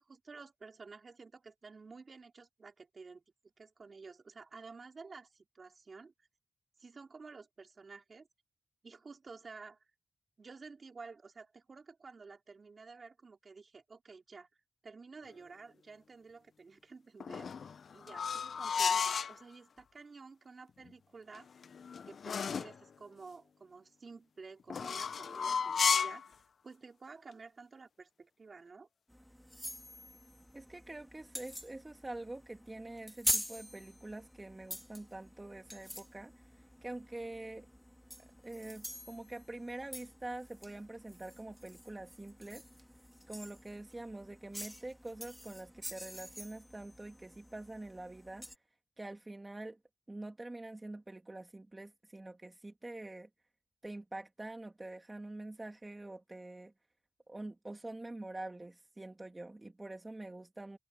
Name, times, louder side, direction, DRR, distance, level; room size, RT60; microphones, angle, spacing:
voice 1, 0.0-6.1 6.8-8.3 8.8-9.8 10.4-14.5 14.8-21.5 22.1-28.9, right 4 dB, 50° right, 4.6 m, -52 dB
sound 1, 17.2-19.4 21.4-22.8 24.7-26.3, left 6 dB, 70° left, 0.5 m, -33 dB
sound 2, 29.1-48.6, equal, 5° left, 2.0 m, -45 dB
voice 2, 30.5-37.7 38.4-42.7 43.3-48.5 49.0-49.8 50.1-53.3 53.8-56.7 57.3-60.8, right 2 dB, 20° right, 2.7 m, -45 dB
cardioid pair, 75°, 0 cm